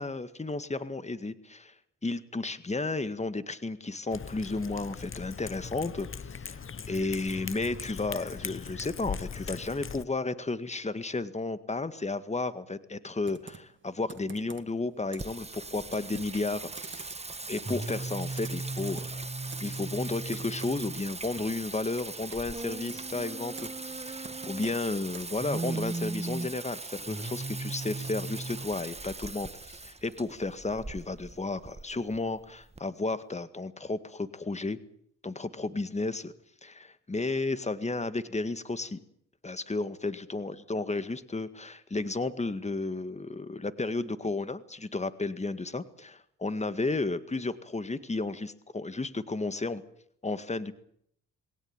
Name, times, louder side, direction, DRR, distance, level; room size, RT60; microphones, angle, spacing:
voice 1, 0.0-1.7 2.0-6.6 6.9-17.0 17.5-19.3 19.6-34.8 35.2-36.3 36.6-39.0 39.4-49.8 50.2-50.7, left 3 dB, 20° left, 13 dB, 1.9 m, -33 dB
Cat, 4.1-10.0, left 6 dB, 40° left, 1.3 m, -40 dB
Computer keyboard, 13.2-25.5, right 5 dB, 35° right, 2.1 m, -50 dB
Singing, 15.2-32.8, right 3 dB, 20° right, 1.6 m, -38 dB
21.0 x 18.0 x 9.0 m, 0.67 s
cardioid pair, 65°, 33 cm